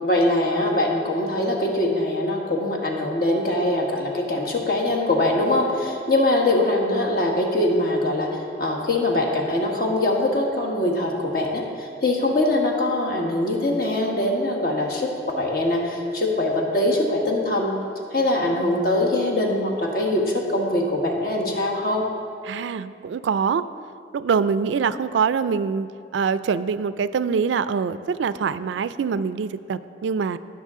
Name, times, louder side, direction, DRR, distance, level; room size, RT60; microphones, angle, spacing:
voice 1, 0.0-15.1 15.4-17.7 18.1-22.1, left 1 dB, 55° left, 0 dB, 1.3 m, -22 dB
voice 2, 22.5-23.6 24.1-30.4, right 6 dB, 85° right, 15 dB, 0.3 m, -24 dB
17.5 x 6.0 x 3.7 m, 2.4 s
head